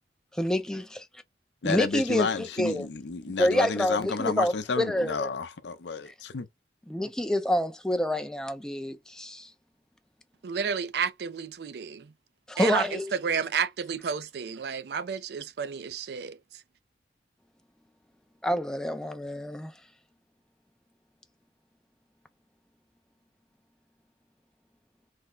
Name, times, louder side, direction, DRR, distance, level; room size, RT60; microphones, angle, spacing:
voice 1, 0.3-1.0 1.6-2.9 3.4-5.3 6.1-6.2 6.9-9.5 12.5-13.1 18.4-19.7, left 1 dB, 5° left, 0.4 m, -27 dB
voice 2, 1.6-6.5, left 4 dB, 85° left, 0.6 m, -31 dB
voice 3, 10.4-12.1 12.6-16.4, right 6 dB, 70° right, 0.4 m, -31 dB
3.3 x 2.1 x 3.7 m
head